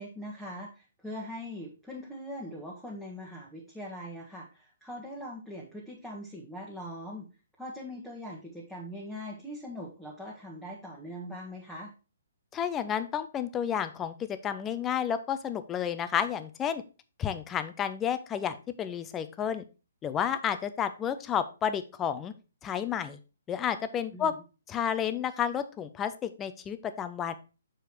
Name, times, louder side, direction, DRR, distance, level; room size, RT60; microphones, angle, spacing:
voice 1, 0.0-7.3 7.6-11.9 24.1-24.4, equal, ahead, -6 dB, 1.4 m, -41 dB
voice 2, 12.5-16.8 17.2-19.6 20.0-22.3 22.6-23.2 23.5-24.3 24.7-27.3, left 8 dB, 15° left, 11 dB, 0.6 m, -31 dB
6.9 x 4.7 x 4.5 m, 0.32 s
figure-of-eight pair, 130°, 0 cm